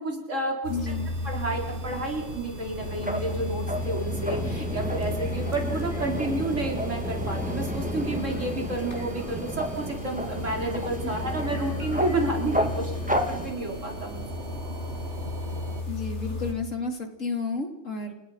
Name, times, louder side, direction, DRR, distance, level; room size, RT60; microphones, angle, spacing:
voice 1, 0.0-0.7 1.2-14.2, right 2 dB, 75° right, 1 dB, 5.0 m, -30 dB
sound 1, 0.6-16.5, left 2 dB, 65° left, 7.4 m, -34 dB
voice 2, 0.7-1.1 15.9-18.1, left 4 dB, 90° left, 4 dB, 4.1 m, -31 dB
sound 2, 0.8-15.8, right 4 dB, 60° right, 2.0 m, -41 dB
sound 3, 2.8-13.5, equal, 5° right, 3.0 m, -33 dB
29.5 x 29.5 x 5.9 m, 0.93 s
omnidirectional pair, 1.3 m